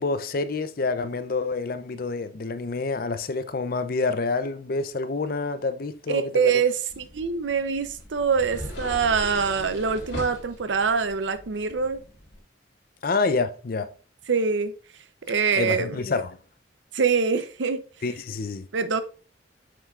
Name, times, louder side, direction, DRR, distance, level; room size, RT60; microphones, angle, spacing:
voice 1, 0.0-6.5 13.0-13.9 15.6-16.4 18.0-18.7, left 3 dB, 50° left, 0.5 m, -27 dB
voice 2, 6.1-12.0 14.3-14.7 15.3-16.0 16.9-17.8 18.7-19.0, right 5 dB, 85° right, 0.6 m, -24 dB
sound 1, 6.9-12.4, left 1 dB, 80° left, 3.0 m, -40 dB
7.7 x 5.5 x 2.4 m
head